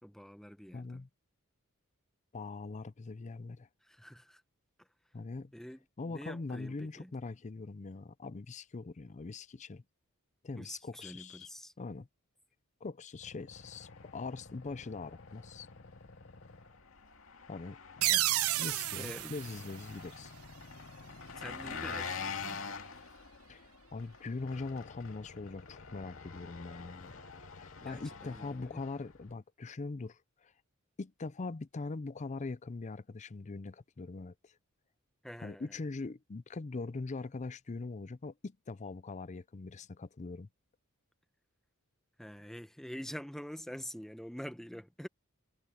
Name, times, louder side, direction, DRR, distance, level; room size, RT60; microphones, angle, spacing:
voice 1, 0.0-1.1 3.8-4.4 4.8-4.9 5.5-7.1 10.6-11.7 18.1-18.2 18.9-19.3 21.4-22.8 27.8-28.8 35.2-35.8 42.2-45.1, equal, ahead, 0.9 m, -46 dB
voice 2, 0.7-1.1 2.3-3.7 5.1-5.5 6.0-9.8 10.4-11.5 11.8-12.1 12.8-15.7 17.5-17.8 18.6-20.3 23.5-27.2 27.6-30.5 31.0-34.5 35.4-40.5, left 3 dB, 35° left, 0.5 m, -42 dB
sound 1, 13.2-17.0 18.0-23.0 24.4-28.8, left 3 dB, 50° left, 1.0 m, -54 dB
Engine, 13.5-29.3, left 5 dB, 70° left, 2.1 m, -47 dB
sound 2, 18.0-20.6, right 15 dB, 80° right, 0.6 m, -32 dB
head